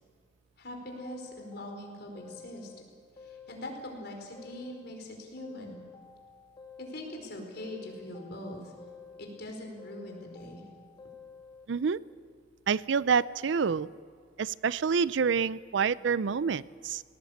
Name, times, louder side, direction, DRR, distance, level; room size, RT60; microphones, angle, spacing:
voice 1, 0.6-2.7 3.2-5.9 6.9-8.7 9.2-10.6, left 1 dB, 60° left, 2 dB, 4.7 m, -42 dB
sound 1, 0.9-2.8 3.2-5.0 5.4-7.2 7.6-9.5 9.8-11.7, left 5 dB, 25° left, 2.7 m, -51 dB
voice 2, 11.7-12.0 12.7-13.9 14.4-17.0, right 6 dB, 70° right, 19 dB, 0.5 m, -27 dB
20.0 x 18.0 x 8.6 m, 2.2 s
head